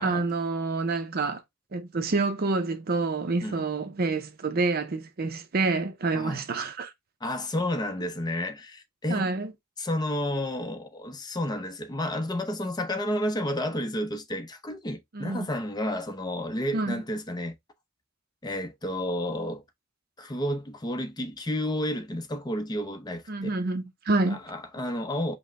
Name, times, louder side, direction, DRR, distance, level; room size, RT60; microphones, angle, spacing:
voice 1, 0.0-1.4 1.7-6.9 9.1-9.5 15.1-15.5 16.7-17.0 23.3-24.4, right 3 dB, 45° right, 0.6 m, -28 dB
voice 2, 7.2-9.3 9.8-17.6 18.4-19.6 20.2-23.6 24.3-25.4, left 1 dB, 20° left, 0.6 m, -31 dB
5.4 x 2.1 x 3.5 m
head